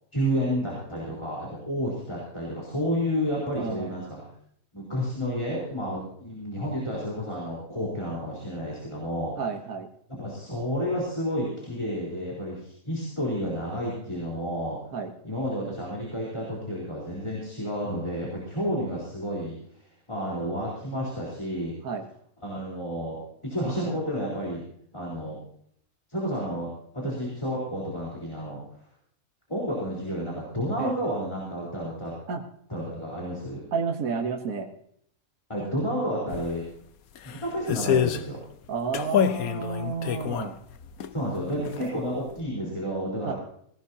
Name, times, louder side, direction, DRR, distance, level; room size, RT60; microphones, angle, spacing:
voice 1, 0.1-4.2 4.7-9.3 10.2-14.8 15.2-19.8 20.1-21.8 22.4-24.6 24.9-25.4 26.1-26.7 26.9-28.6 29.5-32.1 32.7-33.6 35.5-36.6 37.2-38.4 41.1-43.3, equal, 20° left, -5 dB, 4.1 m, -31 dB
voice 2, 3.5-4.0 9.4-9.9 14.9-15.1 21.8-22.0 30.8-30.9 32.3-32.4 33.7-34.7 38.7-40.6 41.5-41.9 43.2-43.3, right 5 dB, 85° right, 4 dB, 1.6 m, -31 dB
sound 1, 36.3-36.4 37.2-38.3 38.9-41.1 41.5-42.0 42.3-42.4, left 8 dB, 85° left, 1.3 m, -27 dB
18.5 x 17.5 x 2.8 m, 0.66 s
omnidirectional pair, 1.5 m